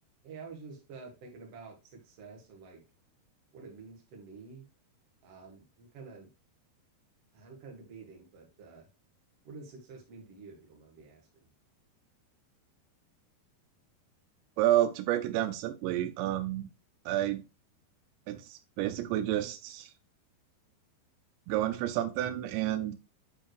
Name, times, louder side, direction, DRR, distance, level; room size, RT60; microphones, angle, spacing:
voice 1, 0.2-2.8 3.5-4.7 5.2-6.3 7.3-8.9 9.4-11.5, right 4 dB, 70° right, 1.4 m, -49 dB
voice 2, 14.6-16.7 17.1-17.4 18.3-19.9 21.5-23.0, right 13 dB, 90° right, 3.0 m, -30 dB
8.5 x 4.5 x 3.1 m
omnidirectional pair, 5.0 m